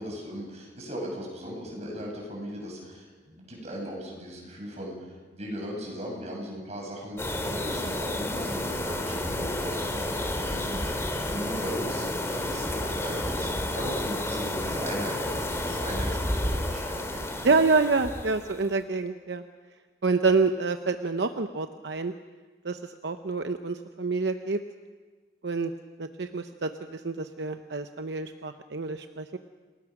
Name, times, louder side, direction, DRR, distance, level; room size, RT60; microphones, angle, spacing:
voice 1, 0.0-4.9 5.3-10.8 11.3-17.5, equal, 40° right, 0 dB, 7.0 m, -38 dB
sound 1, 7.2-18.7, left 1 dB, 15° left, 2.3 m, -31 dB
voice 2, 17.4-19.4 20.0-22.1 22.6-24.6 25.4-25.7 26.0-29.4, right 4 dB, 75° right, 7 dB, 0.8 m, -27 dB
28.0 x 19.5 x 6.1 m, 1.4 s
head